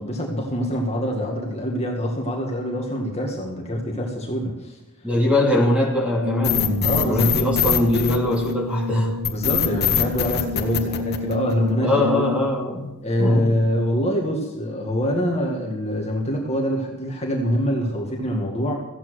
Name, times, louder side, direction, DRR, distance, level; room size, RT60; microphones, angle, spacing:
voice 1, 0.0-4.8 6.8-7.3 9.3-12.4 13.0-18.8, equal, 30° left, -1 dB, 2.0 m, -25 dB
voice 2, 5.0-9.2 11.8-12.9 13.2-13.5, left 1 dB, 5° right, -2 dB, 2.8 m, -21 dB
Brass instrument, 6.2-12.6, left 3 dB, 55° right, 1.5 m, -30 dB
sound 1, 6.4-8.7 9.2-11.7, left 8 dB, 45° left, 1.4 m, -23 dB
15.0 x 8.8 x 6.5 m, 0.94 s
head